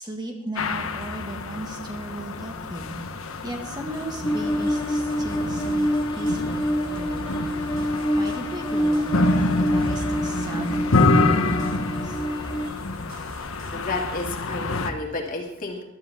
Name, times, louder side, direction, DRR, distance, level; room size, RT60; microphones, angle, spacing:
voice 1, 0.0-3.0 3.4-5.9 6.1-12.2, right 1 dB, 20° right, 1 dB, 1.9 m, -36 dB
sound 1, 0.6-14.9, left 3 dB, 70° left, 1.1 m, -27 dB
sound 2, 3.9-14.6, right 1 dB, 60° right, 3.0 m, -44 dB
sound 3, 4.2-12.7, equal, 20° left, 1.9 m, -26 dB
voice 2, 13.3-15.8, left 2 dB, 40° left, 1 dB, 2.6 m, -31 dB
22.0 x 12.5 x 3.7 m, 0.90 s
head